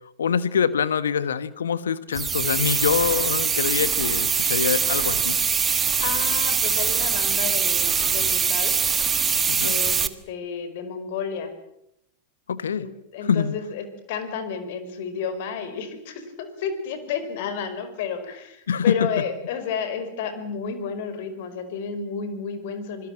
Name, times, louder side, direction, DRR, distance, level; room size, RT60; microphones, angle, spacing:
voice 1, 0.2-5.4 9.5-9.8 12.5-12.9 13.3-13.5 18.7-19.1, left 7 dB, 75° left, 16 dB, 1.3 m, -24 dB
sound 1, 2.1-10.1, right 6 dB, 20° right, 1.5 m, -23 dB
voice 2, 6.0-8.8 9.6-11.5 12.8-23.1, left 6 dB, 60° left, 10 dB, 4.8 m, -31 dB
26.5 x 21.0 x 7.5 m, 0.80 s
figure-of-eight pair, 90°, 0 cm